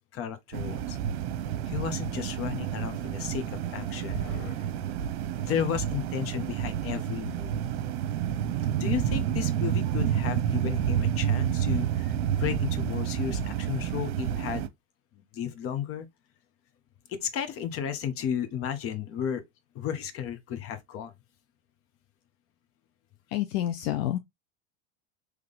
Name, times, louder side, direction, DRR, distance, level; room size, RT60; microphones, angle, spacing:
voice 1, 0.1-1.0 1.6-5.0 5.4-7.6 8.8-14.7 15.1-16.0 17.1-19.4 19.7-21.2, left 9 dB, 40° left, 1.0 m, -33 dB
sound 1, 0.5-14.7, right 10 dB, 65° right, 0.8 m, -29 dB
voice 2, 23.3-24.2, left 13 dB, 65° left, 0.6 m, -28 dB
3.8 x 3.2 x 3.3 m
hypercardioid pair, 100°, 34 cm